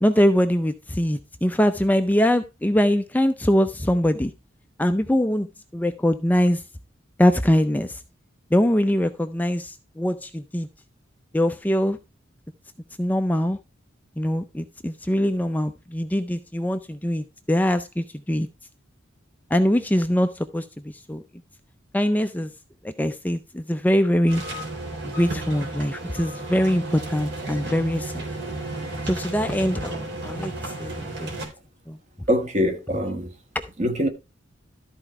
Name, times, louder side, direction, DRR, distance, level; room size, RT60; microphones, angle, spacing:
voice 1, 0.0-4.3 4.8-5.5 5.7-6.6 7.2-8.0 8.5-10.7 11.3-12.0 13.0-13.6 14.2-18.5 19.5-21.2 21.9-22.5 22.8-24.4 25.0-28.2 29.0-31.3 31.9-32.0 33.5-33.7, equal, 10° left, 0.5 m, -23 dB
sound 1, 24.3-31.4, right 2 dB, 60° right, 3.7 m, -33 dB
voice 2, 32.3-33.3 33.8-34.1, equal, 35° right, 1.8 m, -23 dB
13.0 x 4.5 x 4.8 m
head